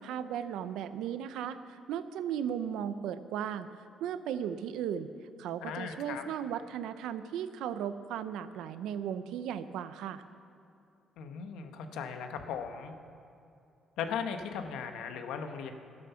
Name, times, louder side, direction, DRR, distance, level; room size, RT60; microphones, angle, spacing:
voice 1, 0.0-3.7 4.0-5.1 5.4-10.2, right 9 dB, 90° right, 12 dB, 0.6 m, -36 dB
voice 2, 5.6-6.2 11.2-13.0 14.0-15.7, left 7 dB, 90° left, 6 dB, 1.1 m, -37 dB
12.5 x 10.0 x 7.0 m, 2.7 s
cardioid pair, 90°, 0 cm